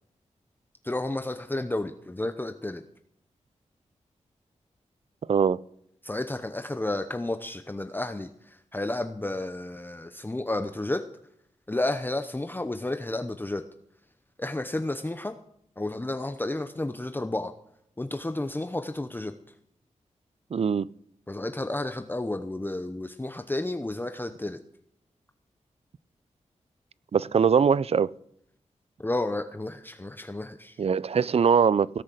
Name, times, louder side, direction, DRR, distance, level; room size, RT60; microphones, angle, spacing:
voice 1, 0.8-2.8 6.0-11.0 11.7-13.6 14.4-15.3 15.8-17.5 18.0-19.3 21.3-24.6 29.0-30.8, left 2 dB, 15° left, 0.8 m, -31 dB
voice 2, 5.3-5.6 20.5-20.9 27.1-28.1 30.8-32.0, right 6 dB, 55° right, 0.4 m, -22 dB
17.5 x 6.4 x 7.7 m
cardioid pair, 70°, 13 cm